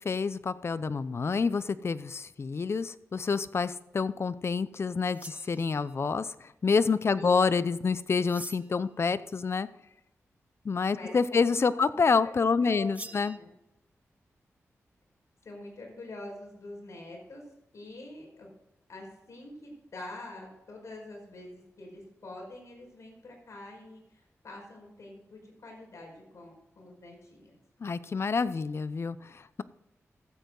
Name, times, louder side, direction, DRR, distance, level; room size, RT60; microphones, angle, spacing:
voice 1, 0.0-9.7 10.6-13.4 27.8-29.6, left 5 dB, 55° left, 15 dB, 0.6 m, -28 dB
sound 1, 5.1-6.0 8.2-8.9 12.9-13.4, right 2 dB, 25° right, 0.9 m, -46 dB
voice 2, 7.1-7.4 10.9-12.0 12.5-12.9 13.3-13.5 15.4-17.4 17.7-18.5 18.9-27.6, left 2 dB, 70° left, 0 dB, 5.1 m, -46 dB
14.5 x 8.3 x 3.9 m, 0.88 s
cardioid pair, 65°, 5 cm